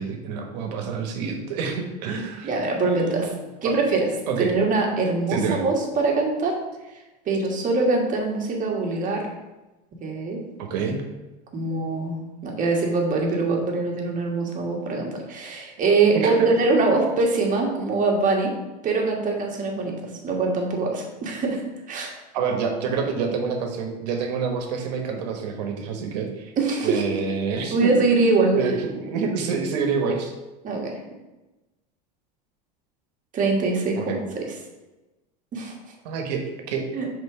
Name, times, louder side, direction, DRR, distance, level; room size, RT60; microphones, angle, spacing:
voice 1, 0.0-2.5 2.8-3.3 3.6-3.8 4.3-4.5 5.3-5.6 10.6-11.0 16.1-16.6 22.3-26.5 26.8-28.1 28.5-30.3 34.0-34.2 36.0-36.8, right 5 dB, 80° right, 4 dB, 1.2 m, -27 dB
voice 2, 2.4-3.3 3.6-4.1 4.4-6.5 7.2-9.3 10.0-10.4 11.5-18.5 18.8-19.9 20.2-21.6 21.9-22.1 26.6-27.2 27.7-28.5 30.6-30.9 33.3-34.4 35.5-35.7 36.9-37.1, right 3 dB, 40° right, 0 dB, 1.6 m, -23 dB
5.5 x 3.8 x 4.8 m, 1.1 s
supercardioid pair, 115°, 21 cm